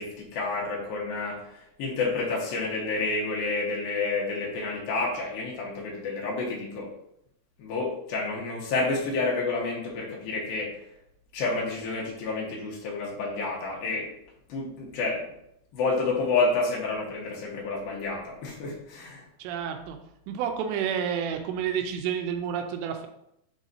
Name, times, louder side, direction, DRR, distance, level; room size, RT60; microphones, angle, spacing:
voice 1, 0.0-6.9 7.6-10.7 11.3-14.1 14.5-15.2 15.7-19.2, left 3 dB, 65° left, -3 dB, 2.7 m, -29 dB
voice 2, 19.4-20.0 20.3-23.1, right 8 dB, 80° right, 5 dB, 2.7 m, -30 dB
9.2 x 4.0 x 2.7 m, 0.78 s
omnidirectional pair, 5.4 m